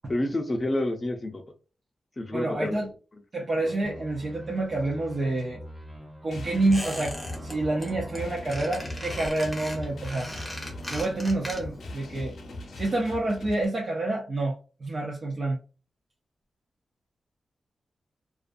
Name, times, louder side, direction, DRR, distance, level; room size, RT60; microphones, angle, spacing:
voice 1, 0.1-1.4 2.2-2.8, left 1 dB, 25° left, 0.6 m, -28 dB
voice 2, 2.3-2.9 3.3-5.6 6.2-7.1 7.4-10.3 10.9-12.3 12.7-14.5 14.8-15.6, right 2 dB, 40° right, 0.6 m, -28 dB
sound 1, 3.8-9.3 9.6-11.0, equal, 15° right, 1.1 m, -43 dB
sound 2, 6.3-13.6, left 1 dB, 80° left, 0.6 m, -40 dB
Squeak, 6.7-7.5 7.8-8.2 8.5-11.9 12.2-12.3, equal, 5° left, 0.9 m, -38 dB
2.5 x 2.3 x 2.5 m
wide cardioid pair, 140°, 0 cm